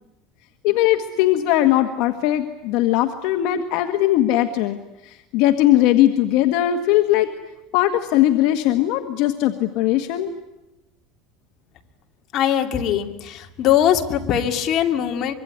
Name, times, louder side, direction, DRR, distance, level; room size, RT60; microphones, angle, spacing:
voice 1, 0.6-4.8 5.0-7.3 7.7-10.3, left 13 dB, 65° left, 6 dB, 1.5 m, -19 dB
voice 2, 12.3-15.3, left 10 dB, 45° left, 4 dB, 2.5 m, -21 dB
24.5 x 23.5 x 9.9 m, 0.97 s
cardioid pair, 150°, 0 cm